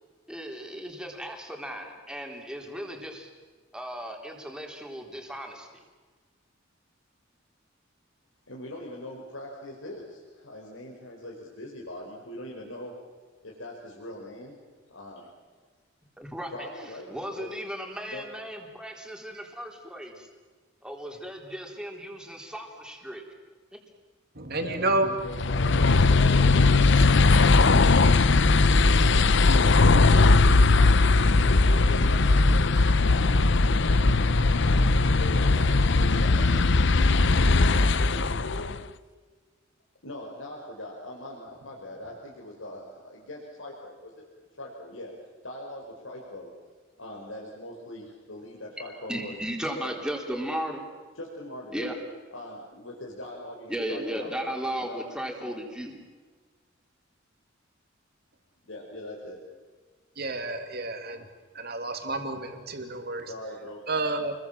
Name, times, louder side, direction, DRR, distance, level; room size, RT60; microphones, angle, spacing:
voice 1, 0.3-3.3 3.7-5.8 16.2-16.7 17.1-20.3 20.8-23.2 49.1-50.8 51.7-52.0 53.7-56.0, equal, 5° right, 2 dB, 4.0 m, -35 dB
voice 2, 8.5-12.9 13.4-14.6 14.9-15.2 16.5-17.5 18.1-18.2 24.6-30.3 30.7-31.0 31.4-34.8 35.2-36.5 37.4-38.8 40.0-44.3 44.6-45.1 45.4-46.5 47.0-49.4 49.7-49.9 51.2-51.9 52.3-55.1 55.4-55.6 58.6-59.4 63.3-63.8, left 1 dB, 85° left, -2 dB, 4.9 m, -41 dB
voice 3, 24.3-25.1 28.4-28.6 60.2-61.2 61.5-63.3 63.9-64.3, right 2 dB, 55° right, 6 dB, 2.9 m, -30 dB
sound 1, 25.3-38.8, left 3 dB, 65° left, 0.8 m, -19 dB
29.5 x 22.0 x 7.4 m, 1.4 s
head